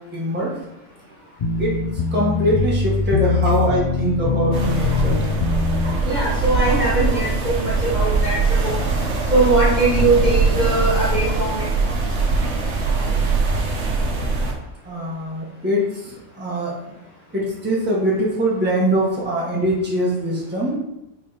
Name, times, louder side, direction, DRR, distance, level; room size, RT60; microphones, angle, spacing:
voice 1, 0.1-0.5 1.6-1.7 2.1-5.2 14.8-16.7 17.3-20.7, right 1 dB, 5° right, -6 dB, 1.7 m, -22 dB
sound 1, 1.4-5.9, left 5 dB, 80° left, 0.3 m, -22 dB
sound 2, 4.5-14.5, right 4 dB, 55° right, 1.3 m, -21 dB
voice 2, 6.1-8.7 9.3-11.6, right 2 dB, 30° right, -6 dB, 1.8 m, -20 dB
5.3 x 4.7 x 5.2 m, 0.87 s
omnidirectional pair, 1.5 m